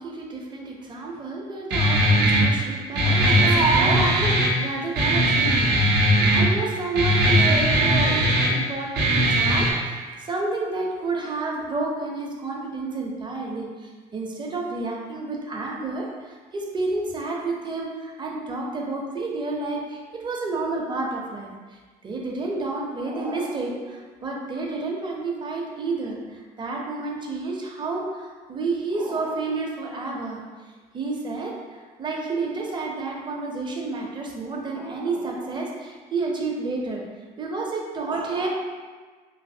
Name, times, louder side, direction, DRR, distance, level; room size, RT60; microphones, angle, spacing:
voice 1, 0.0-30.6 30.9-37.0 37.4-38.5, right 3 dB, 25° right, -1 dB, 0.6 m, -30 dB
Guitar, 1.7-9.7, equal, 75° right, 0.6 m, -20 dB
3.2 x 2.5 x 2.7 m, 1.4 s
cardioid pair, 110°, 17 cm